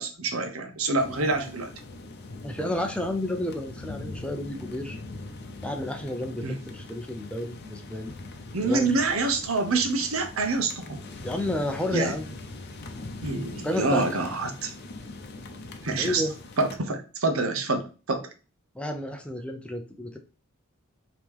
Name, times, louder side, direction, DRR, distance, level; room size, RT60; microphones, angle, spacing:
voice 1, 0.0-1.7 6.4-6.6 8.5-11.0 11.9-12.1 13.2-14.7 15.8-16.2 16.6-18.2, right 3 dB, 80° right, 6 dB, 0.9 m, -26 dB
sound 1, 1.0-16.8, left 2 dB, 50° left, 0.6 m, -41 dB
voice 2, 2.4-5.0 5.6-8.1 8.6-8.9 11.2-12.3 13.6-14.0 16.0-16.3 18.7-20.2, left 1 dB, 5° left, 4 dB, 0.5 m, -31 dB
4.7 x 3.0 x 3.5 m, 0.34 s
head